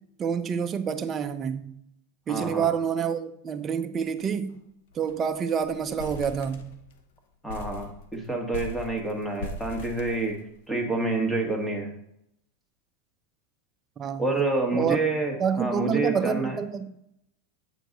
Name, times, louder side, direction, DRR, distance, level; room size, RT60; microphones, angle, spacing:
voice 1, 0.2-1.7 2.3-4.5 4.9-6.7 14.0-14.4 14.7-15.0 15.4-16.9, right 7 dB, 30° right, 0.6 m, -28 dB
voice 2, 2.3-2.7 7.4-10.4 10.7-11.9 14.2-16.6, right 2 dB, 5° left, 1.7 m, -28 dB
sound 1, 4.0-4.2 4.5-4.6 4.9-5.3 5.6-7.0 7.5-10.8, left 2 dB, 75° left, 0.9 m, -40 dB
7.8 x 4.6 x 3.9 m
supercardioid pair, 120°, 0 cm